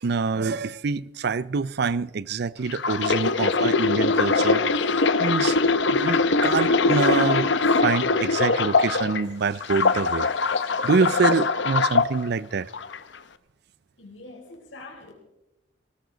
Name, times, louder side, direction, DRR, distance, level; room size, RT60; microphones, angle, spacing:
voice 1, 0.0-4.9 5.2-5.6 5.9-7.5 7.8-10.3 10.8-12.7, right 4 dB, 60° right, 0.5 m, -25 dB
sound 1, 2.7-9.2 9.6-12.1 12.7-13.0, left 4 dB, 70° left, 0.8 m, -22 dB
voice 2, 14.0-15.1, left 2 dB, 90° left, 4.1 m, -44 dB
19.0 x 18.5 x 4.0 m
head